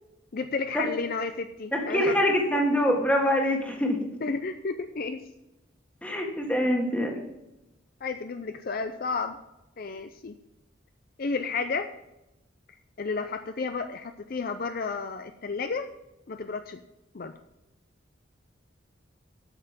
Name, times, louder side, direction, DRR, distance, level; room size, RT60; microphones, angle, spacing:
voice 1, 0.3-2.2 4.2-5.2 8.0-9.4 9.8-10.3 11.2-11.9 13.0-15.9 16.3-16.8 17.1-17.3, left 4 dB, 50° left, 9 dB, 0.5 m, -32 dB
voice 2, 1.7-4.0 6.0-7.1, equal, 5° left, 1 dB, 1.6 m, -24 dB
8.8 x 6.7 x 7.3 m, 0.92 s
head